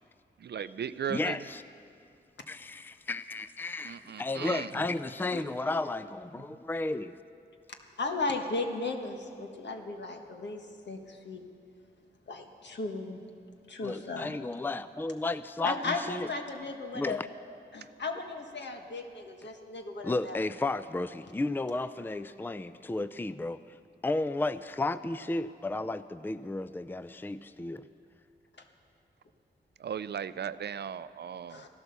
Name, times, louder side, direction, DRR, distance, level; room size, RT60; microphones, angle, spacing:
voice 1, 0.4-1.5 3.8-4.7 6.5-6.6 29.8-31.7, right 8 dB, 65° right, 15 dB, 0.4 m, -37 dB
voice 2, 1.1-1.6 2.5-7.1 13.8-16.3 16.9-17.3 20.0-23.6 24.0-27.8, left 2 dB, 10° left, 13 dB, 0.4 m, -33 dB
voice 3, 8.0-11.4 12.3-13.2 13.7-14.4 15.6-17.2 17.7-20.4 31.5-31.7, left 3 dB, 70° left, 4 dB, 1.5 m, -36 dB
15.0 x 12.0 x 6.9 m, 2.4 s
cardioid pair, 50°, 19 cm